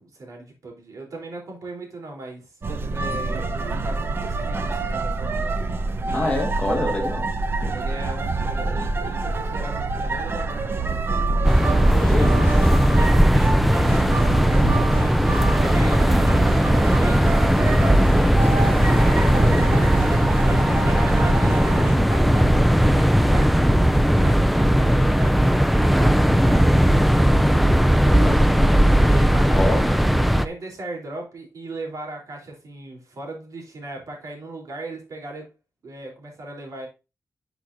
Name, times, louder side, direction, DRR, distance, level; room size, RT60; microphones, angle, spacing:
voice 1, 0.0-5.3 6.0-6.4 7.7-11.2 11.9-12.5 12.8-15.2 15.6-16.2 16.6-19.9 20.4-27.3 29.1-30.0 30.3-35.5 35.8-36.9, right 2 dB, 65° right, 3.4 m, -37 dB
sound 1, 2.6-22.0, right 3 dB, 40° right, 0.8 m, -26 dB
voice 2, 6.1-7.3 7.6-7.8 12.1-12.4 14.6-14.8 20.7-20.9 28.1-28.8 29.5-29.8, left 2 dB, 20° left, 1.6 m, -27 dB
sound 2, 11.4-30.5, equal, ahead, 0.4 m, -18 dB
11.0 x 5.9 x 2.6 m
wide cardioid pair, 170°, 6 cm